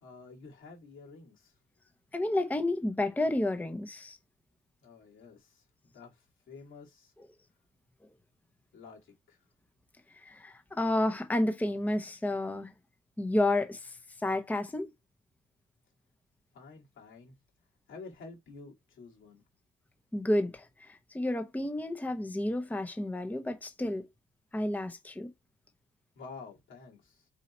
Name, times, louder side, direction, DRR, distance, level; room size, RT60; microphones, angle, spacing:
voice 1, 0.0-1.6 4.8-7.1 8.7-9.4 16.5-17.4 17.9-19.4 26.2-27.3, left 4 dB, 75° left, 2.2 m, -50 dB
voice 2, 2.1-4.2 10.1-12.7 13.2-14.0 14.2-14.9 20.1-24.0 24.5-25.3, left 1 dB, 10° left, 0.7 m, -31 dB
4.1 x 2.7 x 4.2 m
cardioid pair, 90°, 20 cm